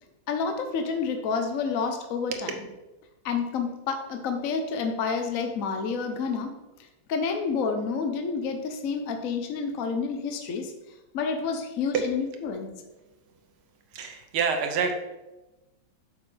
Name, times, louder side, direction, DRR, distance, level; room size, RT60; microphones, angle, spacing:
voice 1, 0.3-2.5 3.2-6.5 7.1-10.7 11.1-12.7, left 5 dB, 60° left, 5 dB, 0.9 m, -29 dB
voice 2, 13.9-14.9, right 5 dB, 85° right, 5 dB, 1.8 m, -27 dB
8.4 x 6.5 x 3.3 m, 1.0 s
omnidirectional pair, 2.3 m